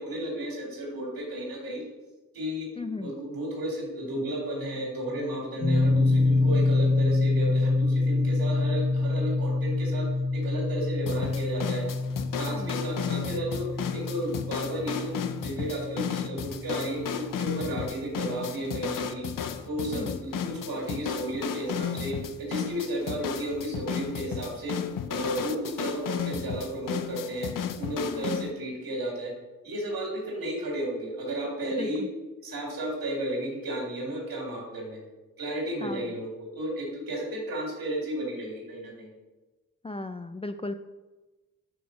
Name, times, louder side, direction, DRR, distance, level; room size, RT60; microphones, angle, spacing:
voice 1, 0.0-1.8 2.3-2.7 3.0-10.1 10.3-11.8 12.3-13.7 13.9-19.3 19.7-24.7 25.1-27.5 27.8-29.3 29.6-32.0 32.4-35.0 35.4-39.1, right 1 dB, 80° right, -2 dB, 2.2 m, -33 dB
voice 2, 2.8-3.1 12.5-12.8 19.9-20.2 28.1-28.5 31.8-32.1 35.8-36.0 39.8-40.7, left 2 dB, 15° left, 9 dB, 0.4 m, -36 dB
sound 1, 5.6-18.5, left 2 dB, 85° left, 1.5 m, -27 dB
sound 2, 11.1-28.5, left 8 dB, 65° left, 0.6 m, -34 dB
5.0 x 4.8 x 5.1 m, 1.2 s
cardioid pair, 40°, 35 cm